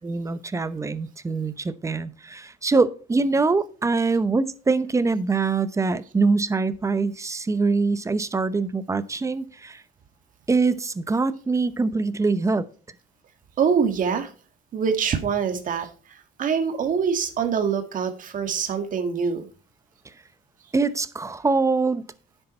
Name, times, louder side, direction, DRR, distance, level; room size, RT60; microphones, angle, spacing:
voice 1, 0.0-9.8 10.5-12.7 20.7-22.0, right 4 dB, 15° right, 0.8 m, -24 dB
voice 2, 13.6-14.3 14.7-15.9 16.4-19.5, right 6 dB, 50° right, 1.9 m, -24 dB
10.5 x 8.0 x 4.4 m
cardioid pair, 110°, 17 cm